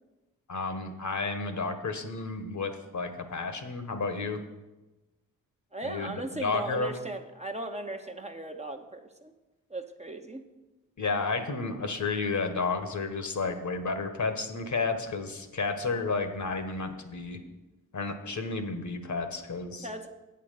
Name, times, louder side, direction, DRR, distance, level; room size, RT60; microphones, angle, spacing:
voice 1, 0.5-4.4 5.8-6.9 11.0-17.4 17.9-19.9, left 4 dB, 50° left, 7 dB, 1.3 m, -32 dB
voice 2, 5.7-9.3 9.7-10.4 19.8-20.1, right 2 dB, 20° right, 4 dB, 1.0 m, -37 dB
8.3 x 5.8 x 6.6 m, 1.1 s
supercardioid pair, 45°, 36 cm